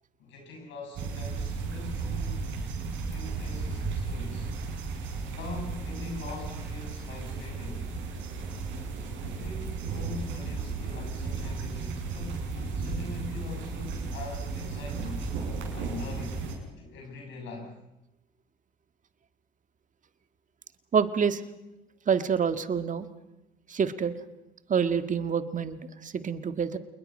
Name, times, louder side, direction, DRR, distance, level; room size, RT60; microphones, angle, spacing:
voice 1, 0.2-2.4 3.1-4.5 5.3-7.9 9.2-15.3 15.7-16.4 16.8-17.7, left 3 dB, 70° left, 1 dB, 6.6 m, -42 dB
sound 1, 1.0-16.6, right 4 dB, 70° right, 6.6 m, -34 dB
voice 2, 20.9-21.4 22.1-23.1 23.7-24.1 24.7-26.8, right 6 dB, 40° right, 10 dB, 1.7 m, -27 dB
28.5 x 20.5 x 5.5 m, 0.96 s
supercardioid pair, 70°, 20 cm